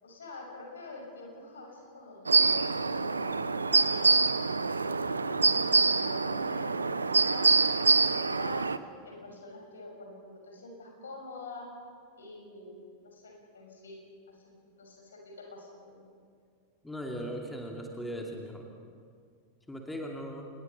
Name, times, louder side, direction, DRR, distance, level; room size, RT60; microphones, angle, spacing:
voice 1, 0.0-4.3 4.6-8.7 9.0-11.7 12.2-14.0 14.3-16.0, left 2 dB, 70° left, 1 dB, 6.2 m, -46 dB
sound 1, 2.3-8.8, right 4 dB, 80° right, 0.7 m, -25 dB
voice 2, 16.8-18.7 19.7-20.5, equal, 5° left, 1 dB, 2.7 m, -38 dB
27.5 x 21.0 x 5.6 m, 2.2 s
figure-of-eight pair, 90°, 0 cm